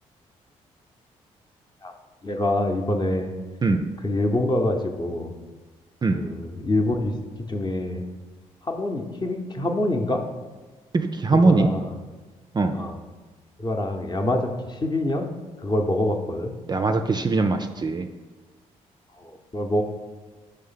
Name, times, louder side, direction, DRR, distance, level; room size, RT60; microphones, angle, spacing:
voice 1, 2.2-3.3 4.0-5.3 6.1-7.1 7.5-8.0 8.6-10.2 11.3-12.0 12.7-13.0 13.6-15.3 15.6-16.5 19.2-19.8, left 1 dB, 25° left, 4 dB, 0.8 m, -25 dB
voice 2, 10.9-11.7 12.5-12.8 16.7-18.1, right 3 dB, 25° right, 6 dB, 0.4 m, -21 dB
5.3 x 3.4 x 5.6 m, 1.3 s
hypercardioid pair, 45°, 16 cm